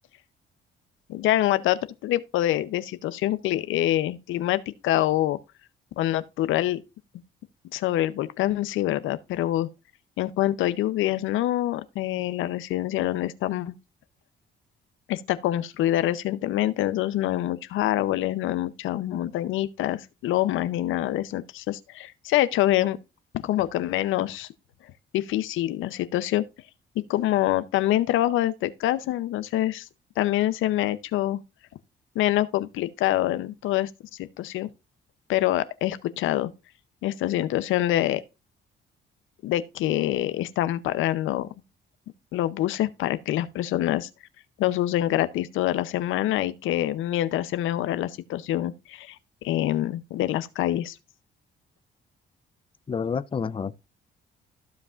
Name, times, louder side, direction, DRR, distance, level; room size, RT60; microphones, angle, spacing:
voice 1, 1.1-5.4 6.0-6.8 7.7-9.7 10.2-13.7 15.1-23.0 23.3-24.5 25.1-26.4 27.1-29.9 30.2-31.4 32.1-34.7 35.3-36.5 37.0-38.2 39.4-41.5 42.3-44.1 44.6-49.2 49.4-51.0, left 14 dB, 85° left, 0.7 m, -25 dB
voice 2, 52.9-53.8, left 6 dB, 25° left, 0.5 m, -29 dB
14.5 x 5.4 x 2.5 m
cardioid pair, 90°, 20 cm